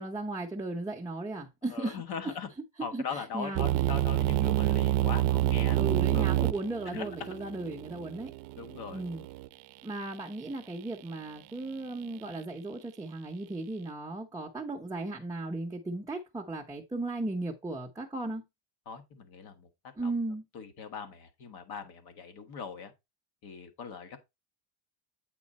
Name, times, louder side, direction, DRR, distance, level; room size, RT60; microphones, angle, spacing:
voice 1, 0.0-2.3 2.9-3.7 5.7-8.3 8.9-9.2 9.8-18.4 20.0-20.4, right 2 dB, 10° right, 0.8 m, -36 dB
voice 2, 1.7-2.5 2.8-5.8 6.1-6.5 6.9-7.1 8.6-9.0 18.8-19.7 20.0-20.1 20.5-22.9 23.4-24.2, left 6 dB, 60° left, 1.6 m, -40 dB
sound 1, 3.6-9.5, right 14 dB, 70° right, 0.6 m, -28 dB
8.4 x 3.8 x 4.1 m
cardioid pair, 145°, 42 cm